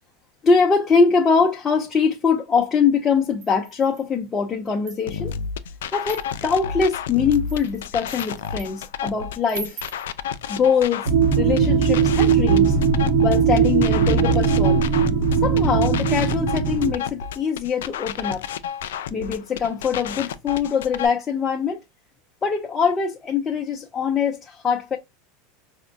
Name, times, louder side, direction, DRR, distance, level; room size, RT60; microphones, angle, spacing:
voice 1, 0.4-5.3 5.9-9.8 10.5-11.1 11.4-12.8 13.2-14.8 15.4-18.5 19.1-21.8 22.4-25.0, left 5 dB, 25° left, 0.5 m, -22 dB
sound 1, 3.4-4.2 4.7-5.4 6.0-6.6 7.2-8.9 9.5-10.1, right 5 dB, 80° right, 0.9 m, -40 dB
sound 2, 5.1-21.1, left 8 dB, 85° left, 0.3 m, -31 dB
sound 3, 11.1-16.9, right 6 dB, 45° right, 0.7 m, -19 dB
4.3 x 2.1 x 2.5 m
supercardioid pair, 115°, 0 cm